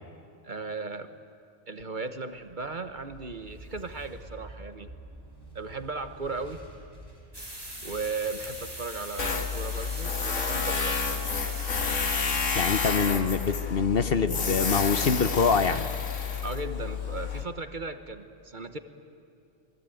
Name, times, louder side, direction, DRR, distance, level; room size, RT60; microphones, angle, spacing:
voice 1, 0.4-1.1 1.7-4.9 5.5-6.6 7.8-10.9 16.4-18.8, right 3 dB, 40° right, 9 dB, 1.3 m, -36 dB
sound 1, 2.7-11.5, equal, 20° left, 6.3 m, -49 dB
sound 2, 7.3-12.8, right 1 dB, 20° right, 4.2 m, -40 dB
Tools, 9.2-17.4, left 5 dB, 80° left, 2.1 m, -30 dB
voice 2, 12.5-15.9, left 5 dB, 50° left, 11 dB, 1.1 m, -25 dB
26.5 x 22.5 x 9.2 m, 2.6 s
omnidirectional pair, 1.3 m